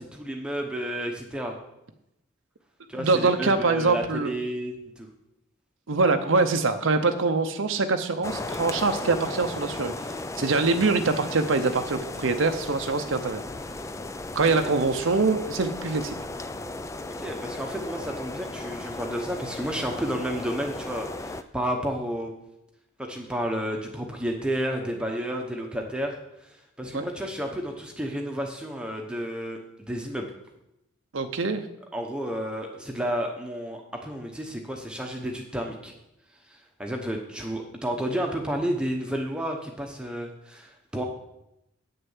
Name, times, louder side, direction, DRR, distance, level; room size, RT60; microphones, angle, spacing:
voice 1, 0.0-1.6 2.9-5.1 14.6-14.7 17.2-22.3 23.0-26.2 26.4-30.3 31.9-35.9 36.5-41.0, equal, 5° right, 2 dB, 0.9 m, -31 dB
voice 2, 3.0-4.3 5.9-9.9 10.4-13.4 14.3-16.2 26.9-27.0 31.1-31.6, right 3 dB, 70° right, 6 dB, 0.7 m, -24 dB
sound 1, 8.2-21.4, left 2 dB, 15° left, 0.3 m, -36 dB
8.8 x 6.7 x 7.2 m, 0.86 s
head